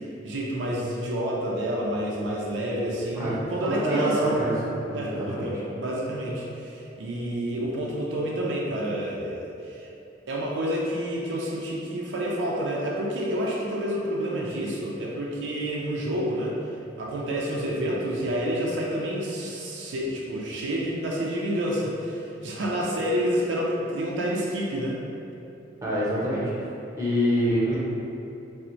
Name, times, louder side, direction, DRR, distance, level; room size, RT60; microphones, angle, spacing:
voice 1, 0.0-4.3 4.9-9.9 10.3-16.5 17.0-25.0, equal, 70° right, -3 dB, 0.4 m, -29 dB
voice 2, 3.1-4.5 4.8-5.5 25.8-26.5 27.0-27.8, equal, 15° right, -8 dB, 0.7 m, -26 dB
4.3 x 2.0 x 2.5 m, 2.8 s
head